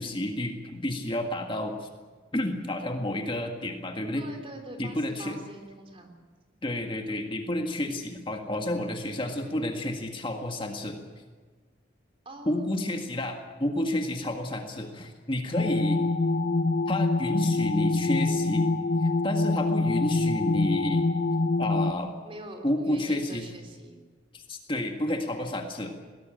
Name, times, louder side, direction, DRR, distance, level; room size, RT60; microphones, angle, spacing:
voice 1, 0.0-1.9 2.3-4.3 4.8-5.4 6.6-11.0 12.5-16.0 16.9-18.7 19.0-21.1 21.6-22.1 22.6-23.5 24.3-25.9, left 1 dB, 25° left, 3 dB, 1.8 m, -30 dB
voice 2, 4.2-6.2 8.5-8.7 12.2-13.0 22.2-24.0 25.2-25.6, right 1 dB, 30° right, 5 dB, 3.4 m, -44 dB
sound 1, 15.5-21.9, left 2 dB, 50° left, 0.8 m, -25 dB
21.0 x 17.5 x 8.9 m, 1.5 s
head